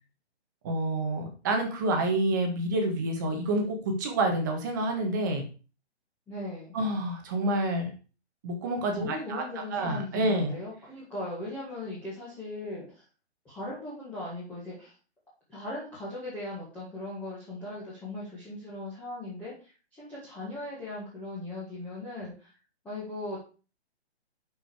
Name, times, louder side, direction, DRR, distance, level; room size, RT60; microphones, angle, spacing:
voice 1, 0.6-5.5 6.7-7.9 8.4-9.4 9.7-10.5, right 1 dB, 15° right, 4 dB, 1.3 m, -28 dB
voice 2, 6.3-6.7 8.9-13.0 13.4-14.9 15.5-22.5 22.8-23.4, left 1 dB, 5° left, -9 dB, 1.6 m, -38 dB
11.5 x 5.1 x 4.8 m, 0.35 s
hypercardioid pair, 175°, 34 cm